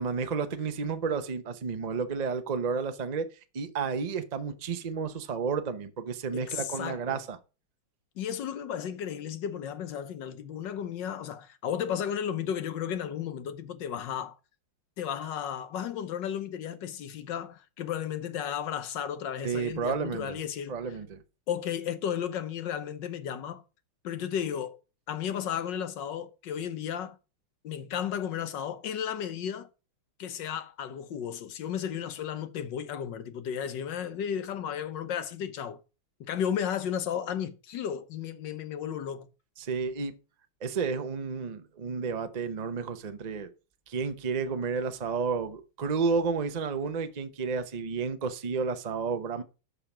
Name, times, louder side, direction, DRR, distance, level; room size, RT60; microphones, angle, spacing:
voice 1, 0.0-3.3 3.5-7.4 19.4-20.4 20.7-21.2 39.6-40.1 40.6-43.5 43.9-49.4, right 5 dB, 70° right, 0.4 m, -31 dB
voice 2, 6.3-7.2 8.2-14.4 15.0-21.0 21.5-23.6 24.0-24.8 25.1-27.2 27.6-29.7 30.2-35.8 36.2-39.3, left 9 dB, 65° left, 1.4 m, -34 dB
8.5 x 5.8 x 6.0 m
omnidirectional pair, 2.3 m